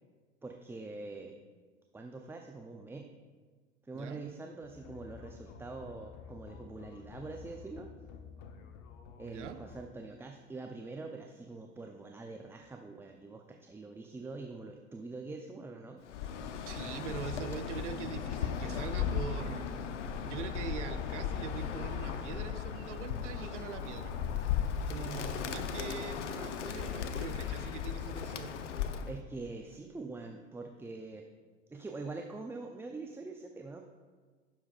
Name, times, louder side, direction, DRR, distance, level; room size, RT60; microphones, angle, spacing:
voice 1, 0.4-1.4 1.9-3.1 3.8-7.9 9.2-16.0 29.1-31.2 31.7-33.8, right 3 dB, 5° right, 3 dB, 0.5 m, -44 dB
sound 1, 4.6-9.8, left 6 dB, 50° left, 1.0 m, -51 dB
voice 2, 9.2-9.6 16.7-19.7 20.2-24.1 24.9-28.5, right 8 dB, 70° right, 8 dB, 0.8 m, -43 dB
Bird, 16.1-29.2, left 8 dB, 70° left, 0.8 m, -36 dB
16.0 x 7.1 x 2.4 m, 1.5 s
figure-of-eight pair, 75°, 37 cm